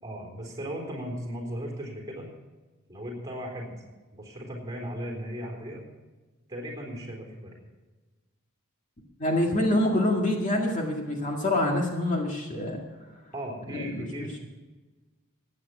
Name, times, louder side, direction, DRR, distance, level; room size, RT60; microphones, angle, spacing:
voice 1, 0.0-2.3 2.9-3.7 4.1-5.8 6.5-7.5 13.3-14.4, equal, 15° right, 0 dB, 3.8 m, -36 dB
voice 2, 9.2-12.8 13.7-14.1, left 1 dB, 35° left, 0 dB, 1.9 m, -26 dB
15.0 x 9.6 x 6.0 m, 1.3 s
head